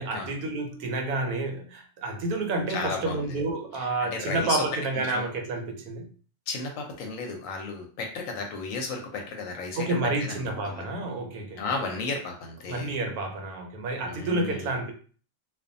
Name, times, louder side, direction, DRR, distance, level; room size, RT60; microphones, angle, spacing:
voice 1, 0.0-6.1 9.8-11.8 12.7-14.9, right 2 dB, 80° right, 1.1 m, -30 dB
voice 2, 2.7-3.2 4.0-4.6 5.1-5.3 6.5-10.3 10.6-10.8 11.6-13.0 14.0-14.7, left 4 dB, 70° left, 0.9 m, -33 dB
2.5 x 2.3 x 2.5 m
omnidirectional pair, 1.6 m